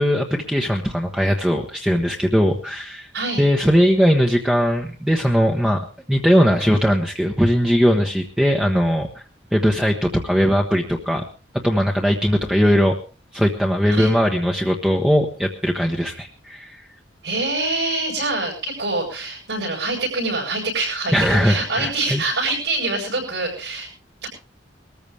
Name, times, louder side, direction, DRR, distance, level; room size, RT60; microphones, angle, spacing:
voice 1, 0.0-3.1 3.4-9.2 9.5-11.2 11.6-12.9 13.3-16.8 21.1-22.2, equal, 5° right, 1 dB, 1.1 m, -19 dB
voice 2, 3.1-3.4 13.9-14.1 17.2-23.9 24.2-24.3, right 2 dB, 75° right, -3 dB, 7.9 m, -25 dB
21.5 x 14.0 x 3.4 m, 0.34 s
head